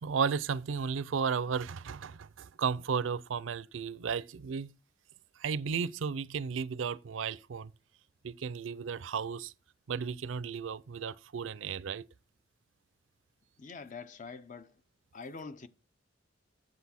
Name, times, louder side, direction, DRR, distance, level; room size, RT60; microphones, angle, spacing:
voice 1, 0.0-4.7 5.4-7.7 8.2-9.5 9.9-12.1, right 6 dB, 85° right, 0.5 m, -34 dB
voice 2, 13.6-14.7 15.1-15.7, left 4 dB, 40° left, 0.6 m, -44 dB
8.2 x 7.4 x 4.2 m
head